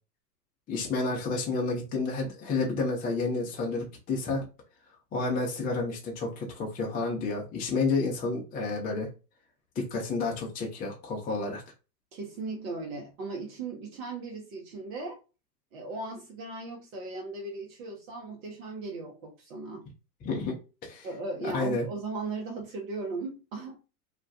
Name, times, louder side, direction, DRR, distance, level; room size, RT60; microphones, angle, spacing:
voice 1, 0.7-4.5 5.1-9.1 9.8-11.6 20.2-20.5 20.8-21.1 21.4-21.8, left 3 dB, 20° left, 0.6 m, -30 dB
voice 2, 12.1-15.2 15.7-19.9 21.0-23.8, right 3 dB, 55° right, 0.8 m, -37 dB
2.4 x 2.2 x 2.6 m
hypercardioid pair, 95°, 50 cm